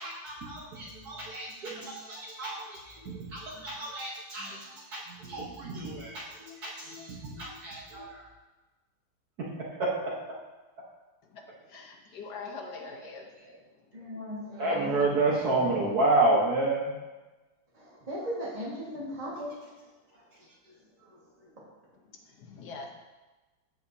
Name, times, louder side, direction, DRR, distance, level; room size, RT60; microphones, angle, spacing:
voice 1, 0.0-8.3 9.4-10.1 12.1-12.2 12.4-13.6 14.6-16.9 20.3-20.4, right 2 dB, 55° right, -4 dB, 1.6 m, -30 dB
voice 2, 11.3-13.3 22.3-23.0, left 4 dB, 65° left, 2 dB, 1.5 m, -43 dB
voice 3, 13.9-14.9 17.7-19.5 20.1-21.6, equal, 20° right, -6 dB, 1.5 m, -39 dB
14.0 x 5.0 x 2.7 m, 1.2 s
omnidirectional pair, 2.1 m